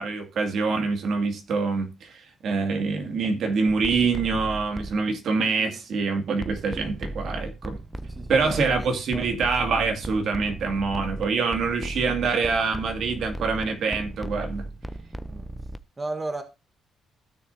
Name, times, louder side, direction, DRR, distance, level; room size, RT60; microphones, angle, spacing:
voice 1, 0.0-7.8 8.3-14.6, right 4 dB, 65° right, 2.3 m, -25 dB
sound 1, 3.7-5.1 6.4-15.8, right 1 dB, 5° right, 0.6 m, -36 dB
voice 2, 8.1-9.3 15.3-15.5 16.0-16.4, right 2 dB, 25° right, 1.3 m, -35 dB
16.0 x 6.7 x 2.7 m
cardioid pair, 90°, 0 cm